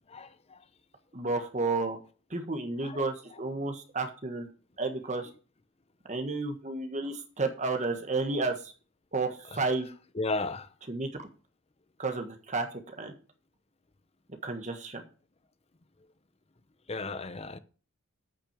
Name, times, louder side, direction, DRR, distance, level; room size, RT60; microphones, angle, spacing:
voice 1, 1.1-2.0 2.3-4.5 4.8-5.3 6.1-8.7 9.1-9.9 10.9-11.3 12.0-13.1 14.4-15.0, right 3 dB, 35° right, 1.5 m, -32 dB
voice 2, 10.2-10.7 16.9-17.6, left 3 dB, 30° left, 0.7 m, -33 dB
8.6 x 6.2 x 6.8 m
head